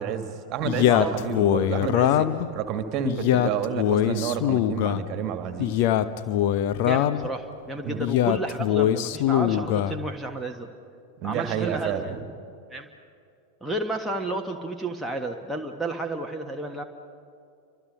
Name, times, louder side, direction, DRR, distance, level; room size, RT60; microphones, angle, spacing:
voice 1, 0.0-5.7 7.8-8.0 11.2-12.2, right 8 dB, 35° right, 7 dB, 2.0 m, -30 dB
Male speech man speaking, 0.6-2.5 3.0-5.0 5.6-7.3 8.0-10.0, left 11 dB, 50° left, 0.9 m, -22 dB
voice 2, 6.8-10.7 11.2-12.1 12.7-12.9 13.6-16.8, right 2 dB, ahead, 0 dB, 1.5 m, -32 dB
29.5 x 25.0 x 5.4 m, 2.5 s
figure-of-eight pair, 90°, 0 cm